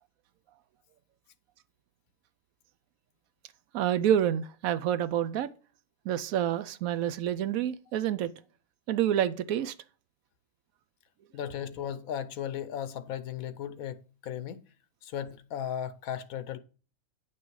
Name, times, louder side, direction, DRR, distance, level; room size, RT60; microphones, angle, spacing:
voice 1, 3.7-5.5 6.1-8.3 8.9-9.7, right 10 dB, 85° right, 1.1 m, -28 dB
voice 2, 11.3-14.6 15.0-16.6, left 9 dB, 85° left, 1.2 m, -36 dB
10.0 x 6.0 x 4.7 m
omnidirectional pair, 1.4 m